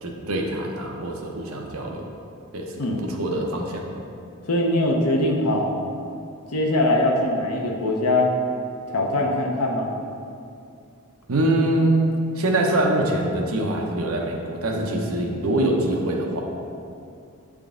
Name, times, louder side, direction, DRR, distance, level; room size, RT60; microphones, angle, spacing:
voice 1, 0.0-2.1 2.5-3.9 11.3-16.4, right 1 dB, 65° right, 1 dB, 0.8 m, -24 dB
voice 2, 4.4-5.7 6.5-8.3 8.9-9.9, left 1 dB, 90° left, 1 dB, 0.8 m, -22 dB
8.0 x 3.7 x 3.7 m, 2.5 s
head